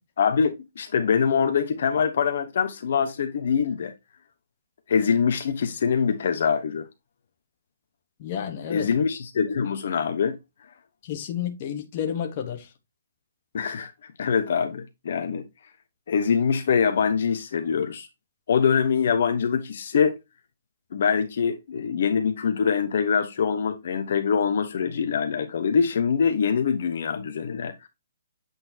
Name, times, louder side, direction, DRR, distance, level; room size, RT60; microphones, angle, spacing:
voice 1, 0.2-3.9 4.9-6.9 8.7-10.4 13.5-13.9 14.2-15.5 16.1-18.1 18.5-20.2 20.9-27.9, left 6 dB, 50° left, 1.0 m, -24 dB
voice 2, 8.2-8.9 11.0-12.7, left 9 dB, 30° left, 1.2 m, -31 dB
8.2 x 4.2 x 2.8 m
hypercardioid pair, 175°, 0 cm